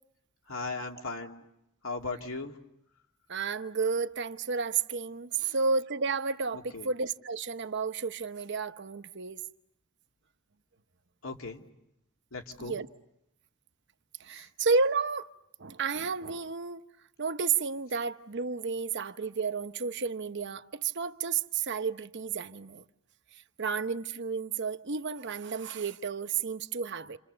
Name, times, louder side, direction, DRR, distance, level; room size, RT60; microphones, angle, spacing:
voice 1, 0.5-1.4 1.8-2.6 5.4-5.5 6.5-6.9 11.2-11.6 12.3-12.7 14.3-14.5, left 3 dB, 75° left, 2.6 m, -38 dB
voice 2, 3.3-9.4 12.6-12.9 14.2-15.3 15.6-16.9 17.2-22.8 23.6-27.2, right 5 dB, 55° right, 0.9 m, -31 dB
29.5 x 28.0 x 6.9 m
head